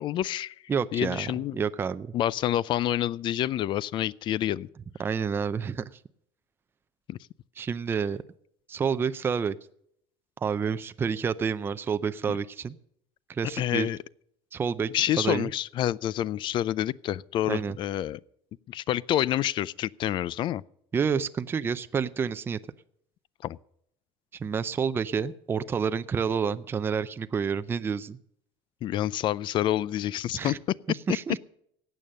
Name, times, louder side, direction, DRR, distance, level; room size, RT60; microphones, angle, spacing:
voice 1, 0.0-0.5 0.9-1.6 2.1-4.7 7.1-7.2 12.3-12.4 13.6-14.0 14.9-18.2 18.7-20.6 23.4-23.6 28.8-30.5, left 12 dB, 40° left, 0.4 m, -28 dB
voice 2, 0.7-1.3 1.5-2.1 5.0-5.8 7.6-8.2 8.7-9.6 10.4-12.8 13.3-13.9 14.5-15.5 17.5-17.8 20.9-22.6 24.3-28.2 30.3-30.6 30.9-31.4, right 6 dB, 20° right, 0.5 m, -29 dB
15.5 x 9.1 x 6.5 m
cardioid pair, 145°, 12 cm